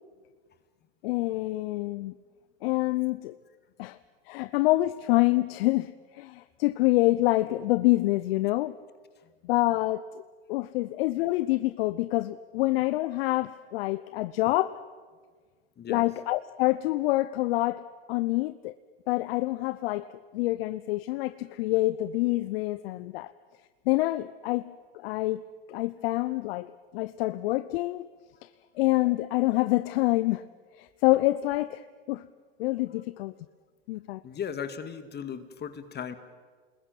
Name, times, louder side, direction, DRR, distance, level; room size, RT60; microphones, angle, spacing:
voice 1, 1.0-2.1 2.6-3.3 3.8-4.0 4.3-8.7 9.4-10.0 10.5-14.8 15.9-18.7 19.1-20.1 20.3-23.3 23.9-25.4 25.7-28.1 28.4-28.5 28.8-30.4 30.8-32.3 32.6-33.3 33.9-34.2, left 18 dB, 70° left, 13 dB, 0.8 m, -26 dB
voice 2, 34.2-36.1, left 7 dB, 30° left, 10 dB, 2.1 m, -36 dB
28.5 x 20.5 x 9.2 m, 1.5 s
hypercardioid pair, 95°, 31 cm